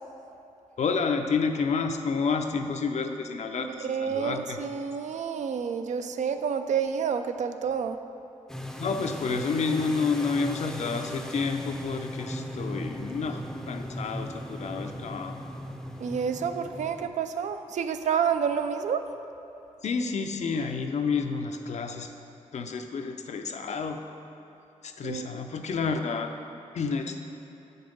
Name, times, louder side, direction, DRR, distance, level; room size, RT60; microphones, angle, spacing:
voice 1, 0.8-4.6 8.8-13.4 13.7-15.3 19.8-22.1 22.5-24.0 24.8-26.3 26.7-27.2, left 5 dB, 65° left, 5 dB, 0.6 m, -29 dB
voice 2, 3.6-8.0 16.0-19.0 25.0-25.3, right 7 dB, 70° right, 8 dB, 0.4 m, -29 dB
sound 1, 8.5-17.1, equal, 5° left, 0.5 m, -38 dB
6.8 x 5.4 x 5.3 m, 2.9 s
cardioid pair, 80°, 13 cm